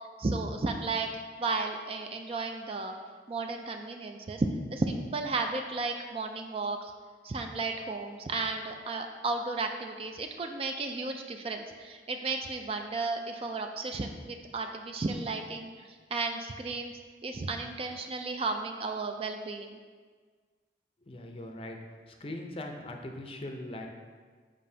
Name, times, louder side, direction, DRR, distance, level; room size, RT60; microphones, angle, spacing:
voice 1, 0.2-1.1 1.4-2.9 3.3-6.9 7.2-16.9 17.2-19.8, right 3 dB, 30° right, 5 dB, 0.3 m, -33 dB
voice 2, 21.0-21.8 22.1-23.9, left 1 dB, 30° left, 3 dB, 0.5 m, -40 dB
7.4 x 5.0 x 2.7 m, 1.5 s
head